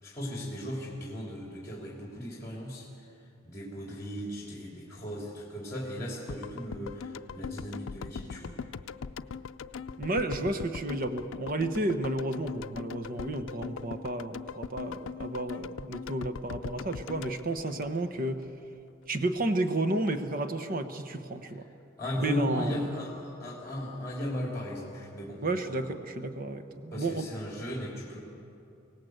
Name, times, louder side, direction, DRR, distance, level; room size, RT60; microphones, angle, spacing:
voice 1, 0.0-2.9 3.4-8.6 22.0-25.8 26.9-28.2, equal, 15° left, -2 dB, 3.3 m, -37 dB
sound 1, 6.3-18.5 18.7-18.8, left 5 dB, 85° left, 0.5 m, -40 dB
voice 2, 10.0-18.4 19.1-21.6 22.2-22.8 25.4-27.3, right 2 dB, 45° right, 9 dB, 1.1 m, -32 dB
24.0 x 18.0 x 8.0 m, 2.7 s
head